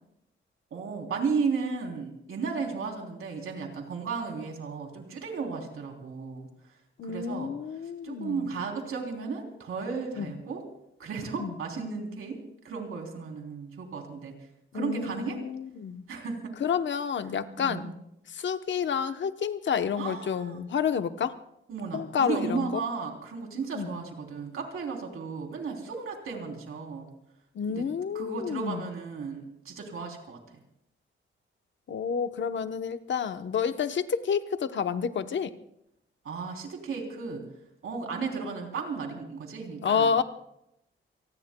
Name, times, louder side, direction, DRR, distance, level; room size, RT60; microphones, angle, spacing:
voice 1, 0.7-6.5 7.0-7.5 7.8-10.6 11.0-12.4 12.6-14.3 14.7-15.4 16.1-16.5 17.5-17.9 20.0-20.6 21.7-27.1 27.7-27.9 28.1-30.4 36.2-37.4 37.8-40.1, right 5 dB, 80° right, 2 dB, 3.3 m, -34 dB
voice 2, 7.0-8.5 10.2-10.3 11.4-11.5 14.7-16.0 16.6-17.9 18.3-21.3 21.9-22.7 23.7-23.9 27.5-28.9 31.9-35.5 39.8-40.2, left 7 dB, 60° left, 10 dB, 0.9 m, -29 dB
28.0 x 19.5 x 2.2 m, 0.81 s
wide cardioid pair, 150°, 21 cm